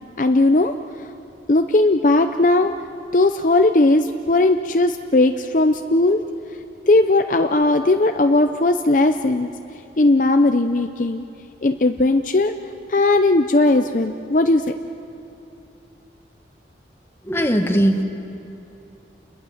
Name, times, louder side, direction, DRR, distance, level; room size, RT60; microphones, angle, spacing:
voice 1, 0.2-0.7 1.5-2.7 3.1-6.2 6.9-9.5 10.0-11.2 11.6-12.5 12.9-14.6, left 2 dB, 45° left, 7 dB, 0.6 m, -17 dB
voice 2, 17.2-18.0, equal, 15° left, 4 dB, 1.6 m, -19 dB
29.5 x 21.0 x 7.2 m, 2.9 s
head